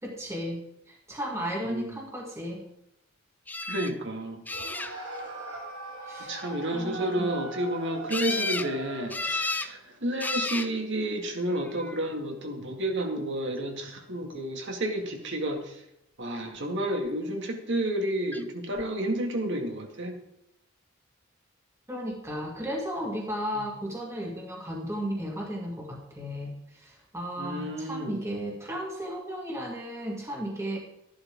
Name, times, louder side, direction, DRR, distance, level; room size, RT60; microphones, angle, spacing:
voice 1, 0.0-2.6 6.0-6.4 6.7-7.4 21.9-30.8, equal, 15° right, -2 dB, 2.2 m, -35 dB
voice 2, 1.6-2.0 3.7-4.4 6.2-15.8 16.2-20.2 23.6-23.7 27.4-28.2, right 1 dB, 60° right, 3 dB, 2.1 m, -31 dB
sound 1, 3.5-3.9 4.5-5.2 8.1-8.7 9.1-9.7 10.2-10.7 11.6-12.1 18.3-18.4 18.8-18.9, left 3 dB, 10° left, 0.4 m, -32 dB
sound 2, 4.5-9.4, right 2 dB, 80° right, 4.9 m, -39 dB
14.0 x 11.5 x 3.6 m, 0.81 s
head